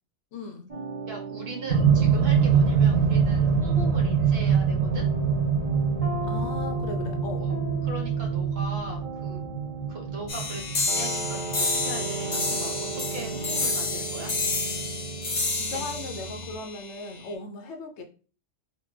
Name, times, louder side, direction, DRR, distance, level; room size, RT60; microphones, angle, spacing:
voice 1, 0.3-0.7 6.3-7.4 15.5-18.0, left 3 dB, 70° left, 0.8 m, -37 dB
sound 1, 0.7-16.6, right 3 dB, 30° right, 1.1 m, -37 dB
voice 2, 1.1-5.1 7.4-7.6 7.8-9.5 9.9-14.3 15.7-15.8, right 2 dB, 60° right, 1.1 m, -39 dB
sound 2, 1.7-13.8 14.8-14.9, right 6 dB, 85° right, 1.0 m, -24 dB
sound 3, 10.3-17.3, left 3 dB, 35° left, 0.5 m, -30 dB
3.3 x 2.2 x 3.1 m
omnidirectional pair, 1.3 m